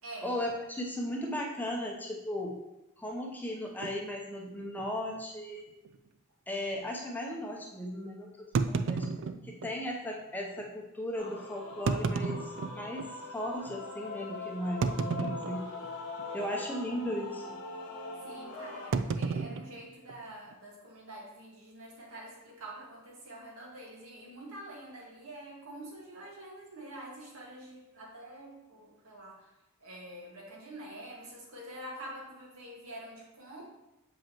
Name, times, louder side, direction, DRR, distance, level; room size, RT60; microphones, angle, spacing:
voice 1, 0.2-2.6 3.0-5.7 6.5-9.1 9.4-13.0 13.3-15.6 16.3-17.6, left 1 dB, 10° left, -1 dB, 0.7 m, -36 dB
sound 1, 3.8-4.0 4.7-4.9 5.2-5.3 5.9-6.0 8.5-9.8 10.6-10.7 11.7-13.1 13.7-13.8 14.8-15.9 16.2-16.5 16.8-17.1 18.9-20.5, right 4 dB, 60° right, 0.4 m, -32 dB
Male singing / Female singing / Musical instrument, 11.1-18.9, left 3 dB, 85° left, 1.2 m, -42 dB
voice 2, 18.2-29.5 29.8-33.6, right 1 dB, 75° right, -3 dB, 1.9 m, -46 dB
7.3 x 5.3 x 3.0 m, 0.93 s
head